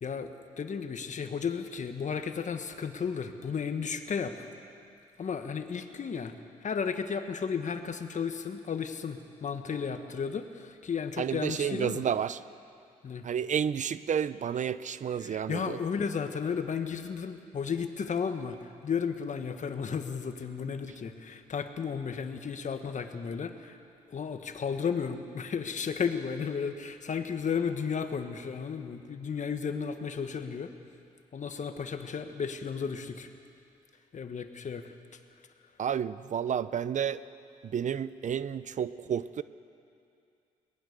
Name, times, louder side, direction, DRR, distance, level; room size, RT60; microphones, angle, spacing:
voice 1, 0.0-4.5 5.2-6.3 6.6-12.0 13.0-13.3 15.2-23.8 24.1-30.7 31.3-33.3 34.1-34.9, left 6 dB, 50° left, 7 dB, 1.6 m, -34 dB
voice 2, 11.2-12.4 13.2-15.8 35.8-37.2 37.7-39.4, right 8 dB, 55° right, 16 dB, 0.6 m, -31 dB
22.5 x 19.0 x 6.8 m, 2.5 s
supercardioid pair, 60°, 16 cm